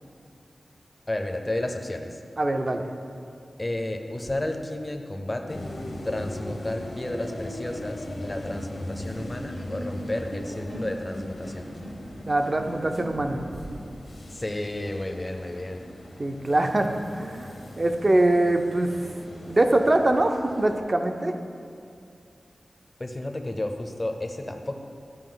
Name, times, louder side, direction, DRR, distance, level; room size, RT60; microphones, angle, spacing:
voice 1, 1.1-2.2 3.6-5.6 6.0-11.7 14.3-15.8 23.0-24.8, left 1 dB, 20° left, 4 dB, 0.6 m, -32 dB
voice 2, 2.4-2.9 12.3-13.5 16.2-17.5 17.8-18.9 19.5-21.3, right 1 dB, 35° right, 6 dB, 0.5 m, -23 dB
sound 1, 5.5-20.8, left 1 dB, 65° left, 0.9 m, -39 dB
sound 2, 8.1-13.8, right 1 dB, 70° right, 0.9 m, -41 dB
11.0 x 4.9 x 3.9 m, 2.5 s
wide cardioid pair, 105°, 0 cm